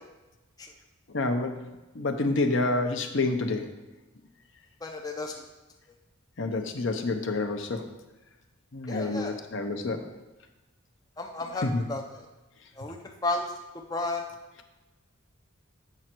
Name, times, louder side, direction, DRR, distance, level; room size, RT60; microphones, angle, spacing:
voice 1, 1.1-1.5 1.9-3.7 6.4-7.8 8.7-10.0 11.6-11.9, left 2 dB, 60° left, 6 dB, 0.8 m, -28 dB
voice 2, 4.8-5.3 8.9-9.3 11.2-11.6 11.9-12.2 12.8-13.0 13.2-13.5 13.9-14.2, left 2 dB, 15° left, 1 dB, 0.5 m, -32 dB
7.9 x 6.1 x 4.4 m, 1.1 s
head